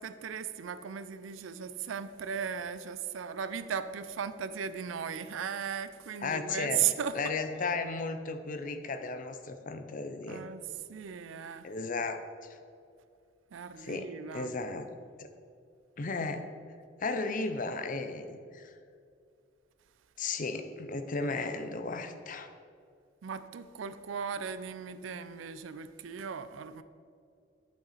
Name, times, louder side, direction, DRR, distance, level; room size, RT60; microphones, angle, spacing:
voice 1, 0.0-7.3 10.3-10.6 10.9-11.7 13.5-14.5 23.2-26.8, right 8 dB, 90° right, 13 dB, 0.4 m, -36 dB
voice 2, 6.2-6.8 7.1-10.4 11.6-12.2 13.8-14.9 15.2-15.3 16.0-16.5 17.0-18.7 20.2-22.5, left 3 dB, 45° left, 8 dB, 0.6 m, -35 dB
9.0 x 5.7 x 4.1 m, 2.3 s
head